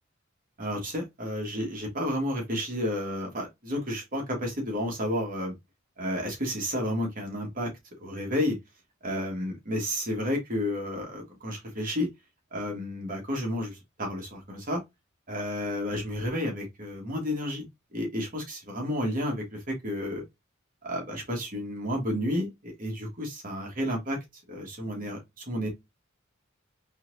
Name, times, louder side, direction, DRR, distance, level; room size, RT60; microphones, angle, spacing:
voice 1, 0.6-5.5 6.0-7.7 8.0-8.6 9.0-12.1 12.5-14.8 15.3-20.2 20.8-24.2 24.5-25.7, left 1 dB, 45° right, 1.5 m, -31 dB
4.2 x 2.9 x 2.6 m
head